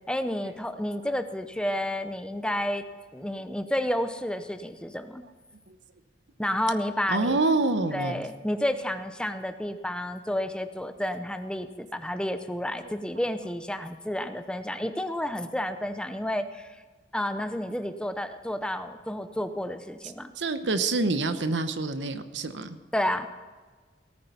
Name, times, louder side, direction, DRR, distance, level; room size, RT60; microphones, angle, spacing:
voice 1, 0.1-2.8 3.1-5.2 6.4-7.4 7.9-16.8 17.1-20.3 22.9-23.3, left 1 dB, 5° left, 9 dB, 0.7 m, -30 dB
voice 2, 7.1-8.3 12.8-12.9 20.4-22.8, right 3 dB, 90° right, 10 dB, 1.0 m, -27 dB
17.5 x 9.5 x 5.8 m, 1.4 s
head